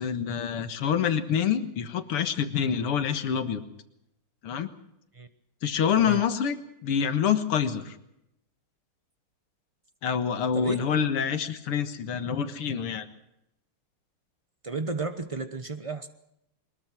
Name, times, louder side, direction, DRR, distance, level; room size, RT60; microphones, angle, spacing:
voice 1, 0.0-3.6 4.4-4.7 5.6-6.6 6.8-8.0 10.0-13.1, left 8 dB, 90° left, 9 dB, 2.4 m, -26 dB
voice 2, 10.5-11.0 14.6-16.1, right 3 dB, 60° right, 9 dB, 0.3 m, -33 dB
22.5 x 21.0 x 6.1 m, 0.81 s
omnidirectional pair, 2.4 m